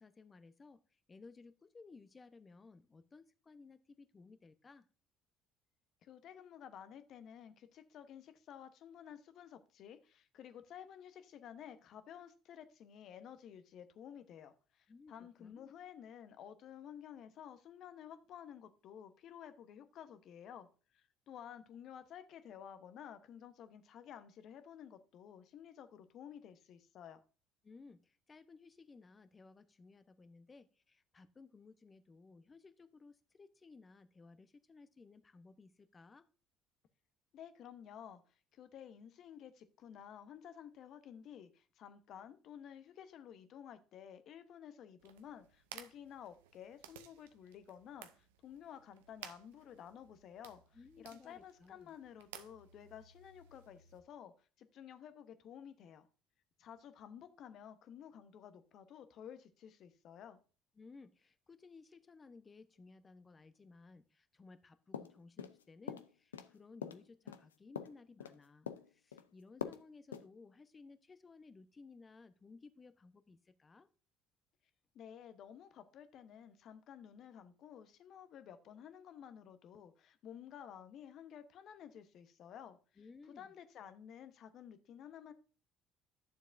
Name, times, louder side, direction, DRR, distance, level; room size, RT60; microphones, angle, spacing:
voice 1, 0.0-4.9 14.9-15.7 27.6-36.3 50.7-51.9 60.8-73.9 83.0-83.5, left 4 dB, 30° left, 0.9 m, -59 dB
voice 2, 6.0-20.7 20.9-27.2 37.3-38.2 38.5-56.1 56.6-60.4 74.9-82.8 83.4-85.3, left 9 dB, 60° left, 1.0 m, -53 dB
sound 1, 45.0-54.0, right 10 dB, 80° right, 0.6 m, -57 dB
sound 2, 64.9-65.6 65.9-66.5 66.8-68.4 68.7-69.2 69.6-69.8 70.1-70.3, left 8 dB, 90° left, 0.4 m, -44 dB
11.0 x 7.1 x 2.6 m
hypercardioid pair, 55°, 0 cm